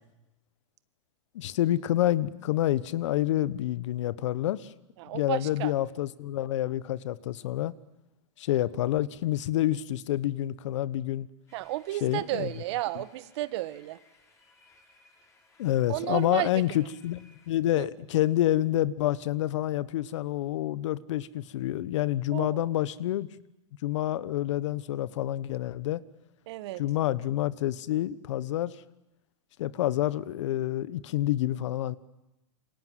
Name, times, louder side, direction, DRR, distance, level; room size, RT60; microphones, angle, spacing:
voice 1, 1.3-4.7 5.1-7.7 8.4-11.3 12.0-12.5 15.6-23.3 23.8-26.0 26.8-28.8 29.6-31.9, left 13 dB, 70° left, 18 dB, 1.1 m, -28 dB
voice 2, 5.0-5.7 11.5-14.0 15.9-16.5 17.8-17.9 22.3-22.7 26.5-26.8, right 17 dB, 60° right, 14 dB, 1.5 m, -32 dB
sound 1, 11.5-17.5, left 3 dB, 15° left, 6.3 m, -62 dB
27.5 x 25.5 x 7.7 m, 0.98 s
hypercardioid pair, 120°, 16 cm